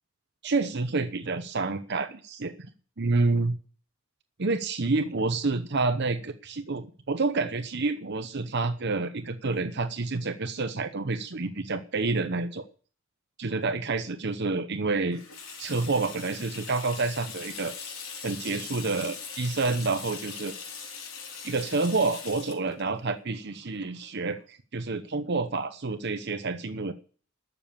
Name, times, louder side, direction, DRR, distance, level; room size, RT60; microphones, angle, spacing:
voice 1, 0.4-2.5 3.0-3.5 4.4-12.6 13.4-15.2 15.6-17.9 18.2-20.5 21.4-26.9, right 3 dB, 55° right, 9 dB, 0.9 m, -28 dB
Water tap faucet / Sink (filling or washing), 15.1-24.4, left 6 dB, 90° left, 3.8 m, -41 dB
13.0 x 7.0 x 8.7 m, 0.40 s
head